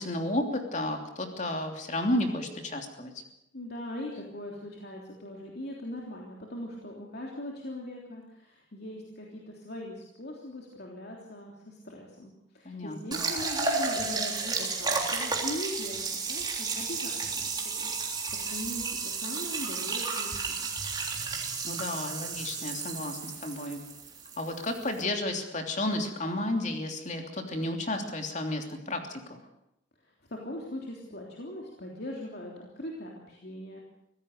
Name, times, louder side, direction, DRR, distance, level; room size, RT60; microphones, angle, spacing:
voice 1, 0.0-3.1 12.6-13.3 21.6-23.8 24.4-29.4, left 1 dB, 40° left, 4 dB, 3.1 m, -32 dB
voice 2, 3.5-20.6 30.0-33.8, left 1 dB, 55° left, -1 dB, 3.3 m, -40 dB
sound 1, 13.1-25.0, right 4 dB, 20° right, 3.5 m, -32 dB
24.5 x 16.5 x 6.7 m, 0.79 s
head